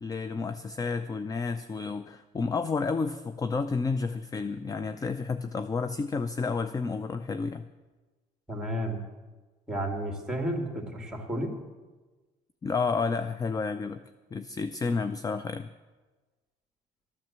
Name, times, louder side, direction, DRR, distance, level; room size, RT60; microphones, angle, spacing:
voice 1, 0.0-7.6 12.6-14.0 14.3-15.7, left 4 dB, 20° left, 11 dB, 0.5 m, -30 dB
voice 2, 8.5-9.1 9.7-11.5, right 1 dB, 5° right, 2 dB, 2.7 m, -32 dB
13.5 x 9.3 x 7.4 m, 1.3 s
cardioid pair, 110°, 17 cm